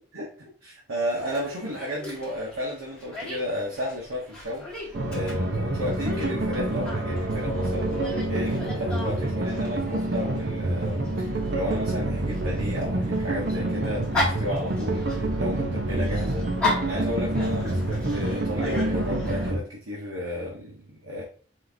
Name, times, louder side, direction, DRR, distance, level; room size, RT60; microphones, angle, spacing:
voice 1, 0.1-16.5 16.8-21.2, equal, 90° right, -5 dB, 1.2 m, -33 dB
Dog, 1.2-19.5, left 2 dB, 5° left, 1.6 m, -36 dB
sound 1, 4.9-19.6, right 1 dB, 55° right, 0.7 m, -27 dB
4.3 x 3.6 x 2.7 m, 0.41 s
head